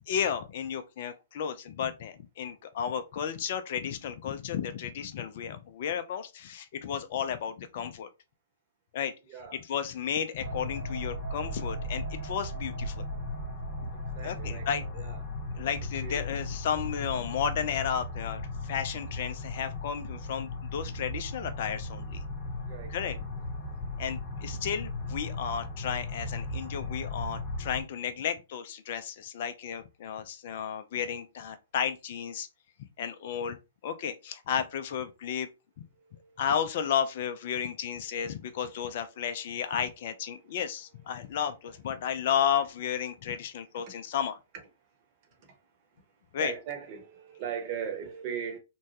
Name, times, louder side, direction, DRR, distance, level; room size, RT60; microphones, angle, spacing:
voice 1, 0.1-8.1 8.9-9.1 9.5-13.0 13.8-13.9 14.2-14.8 15.5-22.2 22.9-23.2 24.0-32.5 33.0-33.6 33.8-35.5 36.4-44.4 46.3-46.5, left 8 dB, 50° left, 0.4 m, -33 dB
voice 2, 9.3-9.6 14.2-15.2 16.0-16.2 22.7-23.2 36.1-36.3 43.9-44.0 45.4-45.6 46.4-48.6, right 7 dB, 40° right, 1.0 m, -38 dB
sound 1, 10.4-27.8, left 2 dB, 30° left, 0.8 m, -37 dB
sound 2, 10.4-17.8 18.2-18.4, right 4 dB, 80° right, 0.4 m, -42 dB
3.0 x 2.2 x 2.7 m
figure-of-eight pair, 115°, 0 cm